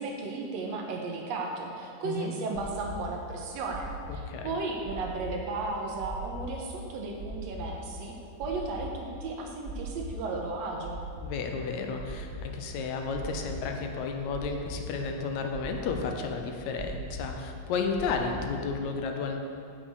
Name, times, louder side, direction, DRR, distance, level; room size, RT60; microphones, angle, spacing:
voice 1, 0.0-8.1 8.4-11.0, right 3 dB, 70° right, 0 dB, 2.0 m, -35 dB
voice 2, 2.0-2.3 4.3-4.6 11.2-19.4, left 5 dB, 80° left, 3 dB, 2.1 m, -32 dB
sound 1, 2.5-18.6, right 1 dB, 50° right, 2.4 m, -41 dB
8.0 x 6.4 x 6.3 m, 2.4 s
omnidirectional pair, 3.3 m